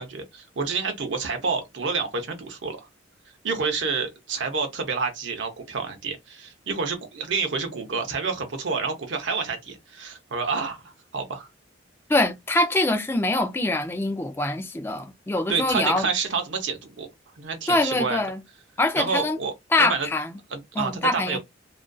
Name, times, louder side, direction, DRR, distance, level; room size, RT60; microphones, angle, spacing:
voice 1, 0.0-2.9 3.4-11.5 15.5-17.1 17.4-18.2 19.0-20.1 20.5-21.4, right 4 dB, 75° right, 0.6 m, -29 dB
voice 2, 12.1-16.1 17.7-18.4 18.8-19.4 19.7-20.4 20.8-21.4, left 2 dB, 10° left, 0.3 m, -24 dB
2.5 x 2.3 x 2.2 m
head